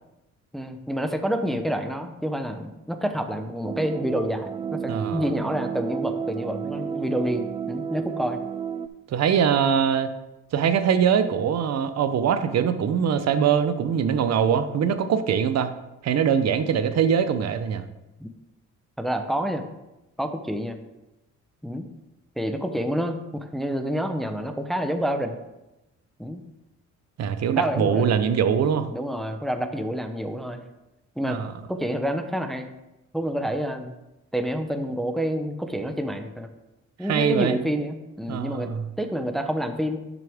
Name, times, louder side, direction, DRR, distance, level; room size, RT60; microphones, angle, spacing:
voice 1, 0.5-4.5 4.8-8.4 18.2-18.3 19.0-19.7 20.2-20.8 21.6-21.9 22.4-25.4 26.2-26.4 27.6-28.2 28.9-30.6 31.2-31.4 31.7-32.7 33.1-33.9 34.3-36.5 37.0-38.7 39.0-40.0, equal, ahead, 6 dB, 0.7 m, -28 dB
sound 1, 3.6-8.9, right 7 dB, 20° right, 0.4 m, -31 dB
voice 2, 4.9-5.2 9.1-10.1 10.5-15.7 16.0-17.8 27.2-28.9 31.2-31.5 37.1-37.6 38.3-38.9, right 7 dB, 60° right, 10 dB, 0.8 m, -22 dB
10.5 x 6.0 x 3.5 m, 0.99 s
cardioid pair, 90°, 30 cm